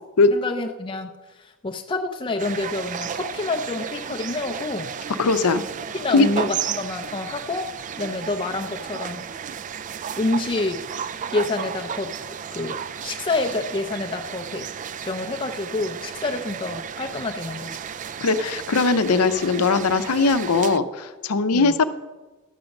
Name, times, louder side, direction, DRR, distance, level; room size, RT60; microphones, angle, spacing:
voice 1, 0.3-1.1 1.4-4.9 5.9-7.7 8.0-9.3 10.2-10.8 11.3-12.1 12.5-12.8 13.0-14.7 15.0-17.8 21.5-21.8, left 2 dB, 25° left, 4 dB, 0.5 m, -27 dB
sound 1, 2.4-20.8, right 8 dB, 35° right, 0.3 m, -34 dB
voice 2, 5.2-5.6 6.1-6.3 18.2-21.8, left 3 dB, 80° left, 11 dB, 0.7 m, -20 dB
12.0 x 5.2 x 7.1 m, 1.2 s
head